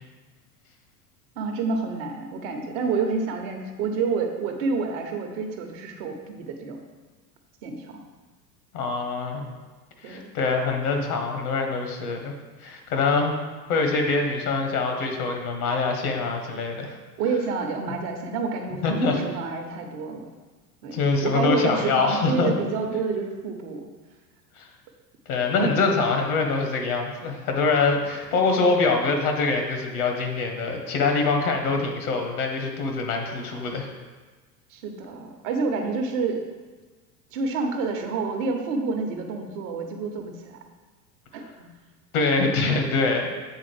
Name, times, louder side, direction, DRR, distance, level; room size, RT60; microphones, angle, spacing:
voice 1, 1.4-6.8 7.6-8.0 10.0-10.3 17.2-20.3 20.8-23.8 34.7-36.4 37.3-40.6 41.3-41.7, right 4 dB, 50° right, 4 dB, 1.0 m, -28 dB
voice 2, 8.7-9.4 10.0-12.3 12.6-13.3 13.7-16.9 18.8-19.2 20.9-22.5 24.6-24.7 25.3-33.9 42.1-43.4, left 4 dB, 60° left, 3 dB, 1.3 m, -24 dB
8.2 x 3.8 x 3.3 m, 1.3 s
figure-of-eight pair, 85°, 49 cm